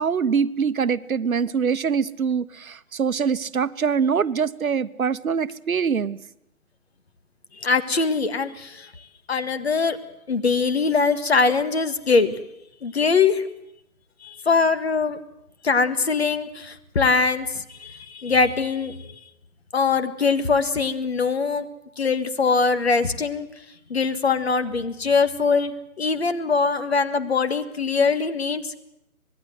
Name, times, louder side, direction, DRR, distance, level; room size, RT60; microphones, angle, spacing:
voice 1, 0.0-6.2, right 6 dB, 75° right, 15 dB, 1.1 m, -24 dB
voice 2, 7.6-8.9 9.3-10.0 10.3-12.4 12.8-13.5 14.2-15.2 15.6-19.2 19.7-21.7 22.0-23.5 23.9-28.8, left 4 dB, 45° left, 11 dB, 1.8 m, -22 dB
25.5 x 20.5 x 7.8 m, 0.80 s
hypercardioid pair, 175°, 43 cm